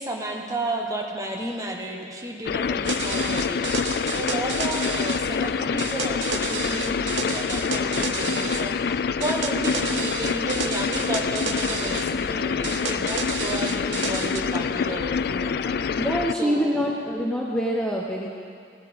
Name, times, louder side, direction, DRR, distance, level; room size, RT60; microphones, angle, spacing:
voice 1, 0.0-16.1 16.4-16.9, right 1 dB, 20° right, 1 dB, 1.2 m, -33 dB
sound 1, 2.5-16.3, left 6 dB, 60° left, 0.3 m, -26 dB
sound 2, 2.8-5.2 5.8-8.6 9.2-12.1 12.6-14.4, right 6 dB, 90° right, 0.9 m, -32 dB
voice 2, 16.0-18.3, equal, 5° left, -3 dB, 0.8 m, -25 dB
17.0 x 10.5 x 5.2 m, 2.3 s
head